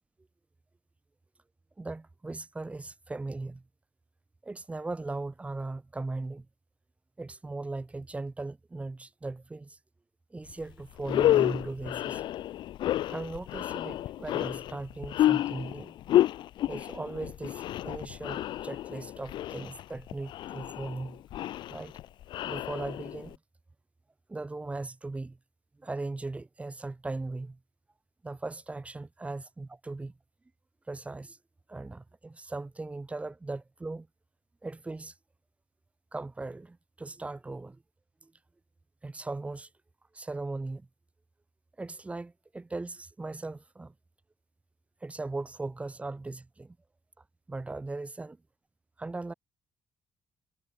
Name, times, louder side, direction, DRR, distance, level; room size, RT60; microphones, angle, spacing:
voice 1, 1.8-3.6 4.4-6.5 7.2-9.8 10.3-12.2 13.1-15.9 16.7-21.2 21.7-22.0 22.5-23.4 24.3-25.4 25.8-27.6 28.2-30.2 30.9-31.4 31.7-34.1 34.6-35.1 36.1-37.8 38.2-38.3 39.0-39.7 40.1-40.9 41.8-43.9 45.0-46.8 47.5-48.4 49.0-49.3, right 3 dB, 15° right, 2.2 m, -38 dB
sound 1, 10.5-10.6 11.0-23.3, left 13 dB, 80° left, 0.7 m, -30 dB
cardioid pair, 130°, 8 cm